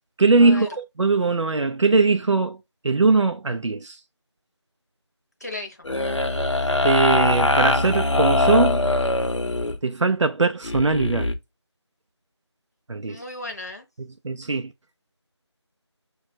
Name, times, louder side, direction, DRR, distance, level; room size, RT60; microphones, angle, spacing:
voice 1, 0.2-2.6 2.8-4.0 6.8-8.8 9.8-11.3 12.9-13.2 14.2-14.7, right 3 dB, 85° right, 0.5 m, -20 dB
voice 2, 5.4-5.9 13.1-13.8, left 2 dB, 35° left, 0.7 m, -35 dB
sound 1, 5.8-9.8 10.6-11.4, left 2 dB, 90° left, 0.6 m, -22 dB
6.4 x 2.3 x 2.6 m
figure-of-eight pair, 170°, 15 cm